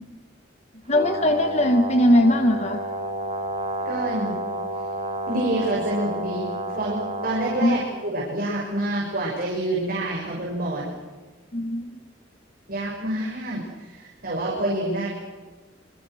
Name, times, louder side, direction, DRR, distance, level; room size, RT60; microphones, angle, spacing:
voice 1, 0.9-2.8 7.6-7.7 11.5-12.0, left 1 dB, 35° left, 6 dB, 1.3 m, -20 dB
Brass instrument, 0.9-7.9, right 1 dB, 35° right, 2.7 m, -30 dB
voice 2, 3.9-4.3 5.3-6.5 6.7-10.9 12.7-15.1, right 1 dB, 50° right, -3 dB, 6.8 m, -27 dB
27.0 x 27.0 x 6.4 m, 1.3 s
head